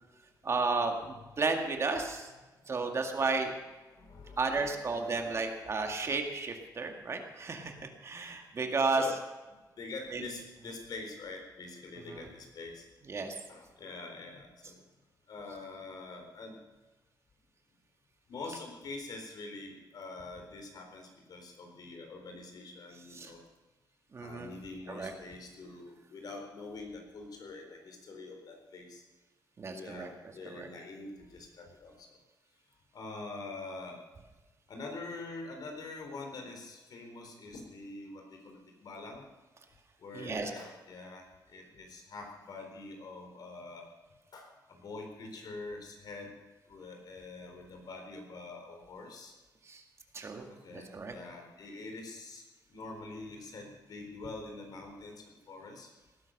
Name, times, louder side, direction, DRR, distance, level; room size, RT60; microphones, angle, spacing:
voice 1, 0.4-2.3 2.7-3.5 4.4-9.0 10.1-10.2 12.1-12.3 13.1-13.4 23.1-23.3 24.1-24.5 24.9-25.1 29.6-30.1 30.5-30.7 40.1-40.5 49.7-49.8 50.1-50.4 50.7-51.1, right 3 dB, 40° right, 3 dB, 2.0 m, -33 dB
voice 2, 3.3-5.7 8.2-8.6 8.9-9.2 9.8-12.8 13.5-14.8 15.3-16.6 18.3-23.4 24.2-29.0 29.7-32.1 32.9-34.0 34.7-39.2 40.0-43.9 44.3-46.3 46.7-49.3 50.5-52.4 52.7-55.9, left 3 dB, 60° left, 3 dB, 4.1 m, -45 dB
18.0 x 11.0 x 6.6 m, 1.2 s
cardioid pair, 125°, 7 cm